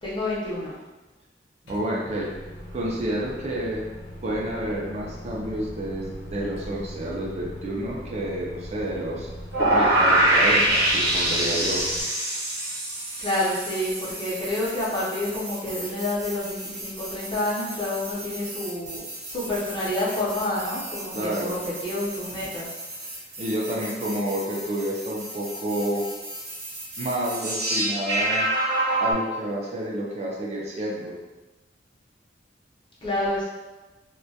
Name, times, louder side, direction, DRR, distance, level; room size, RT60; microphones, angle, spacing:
voice 1, 0.0-0.7 13.2-19.0 19.3-22.7 33.0-33.4, left 1 dB, 25° left, -7 dB, 0.6 m, -28 dB
voice 2, 1.6-2.3 2.7-3.9 4.2-9.3 9.7-11.8 21.1-21.6 23.4-26.1 27.0-28.5 29.0-31.1, right 1 dB, 35° right, -3 dB, 0.4 m, -29 dB
Microwave oven, 1.7-12.0, equal, 75° left, 0.6 m, -40 dB
sound 1, 9.5-29.1, right 1 dB, 60° right, 0.8 m, -27 dB
2.2 x 2.1 x 2.7 m, 1.2 s
head